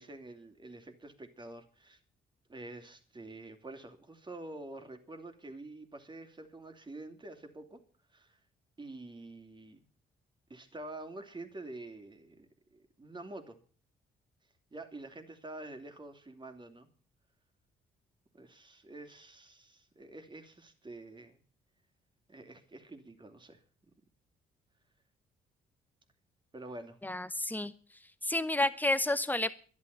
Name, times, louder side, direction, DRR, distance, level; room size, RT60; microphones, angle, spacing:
voice 1, 0.0-2.0 2.5-7.8 8.1-8.4 8.8-9.8 10.5-13.6 14.7-16.9 18.3-21.4 22.3-23.6 26.5-27.0, right 2 dB, 25° right, 7 dB, 2.8 m, -47 dB
voice 2, 27.0-27.7 28.2-29.5, left 1 dB, 10° left, 12 dB, 1.3 m, -30 dB
12.0 x 11.0 x 8.4 m, 0.43 s
cardioid pair, 90°, 20 cm